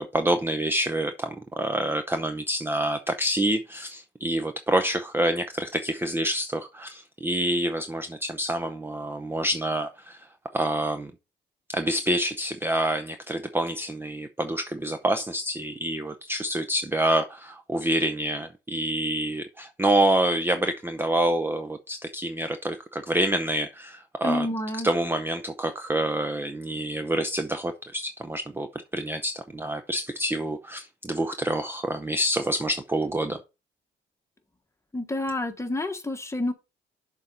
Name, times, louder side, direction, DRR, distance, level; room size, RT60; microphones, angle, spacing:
voice 1, 0.0-10.2 10.5-11.1 11.7-24.5 24.8-33.4, right 1 dB, 10° right, 0.6 m, -27 dB
voice 2, 24.2-24.9 34.9-36.5, left 1 dB, 15° left, 1.3 m, -28 dB
7.0 x 3.9 x 5.3 m
cardioid pair, 90°, 20 cm